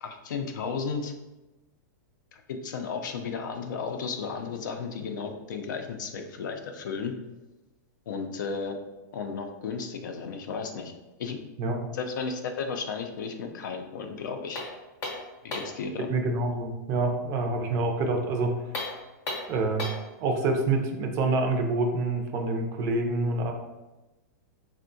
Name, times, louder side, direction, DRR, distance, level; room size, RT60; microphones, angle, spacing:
voice 1, 0.0-1.1 2.3-7.1 8.1-8.8 9.1-10.9 11.2-11.4 11.9-14.6 15.4-16.1, left 5 dB, 75° left, 5 dB, 0.4 m, -34 dB
sound 1, 14.5-15.8 18.6-20.1, left 2 dB, 25° left, 0.7 m, -35 dB
voice 2, 16.1-18.5 19.5-23.5, right 3 dB, 30° right, 3 dB, 0.4 m, -27 dB
3.5 x 2.1 x 2.6 m, 1.1 s
supercardioid pair, 150°, 10 cm